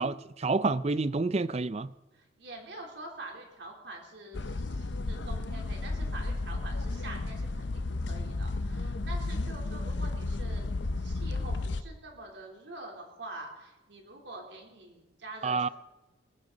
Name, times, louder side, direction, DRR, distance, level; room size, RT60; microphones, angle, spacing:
voice 1, 0.0-1.9 15.4-15.7, right 3 dB, 35° right, 0.5 m, -28 dB
voice 2, 2.1-10.7 11.0-15.7, right 2 dB, 65° right, 3.5 m, -46 dB
sound 1, 4.3-11.8, left 2 dB, 70° left, 0.7 m, -33 dB
20.5 x 15.0 x 4.0 m
head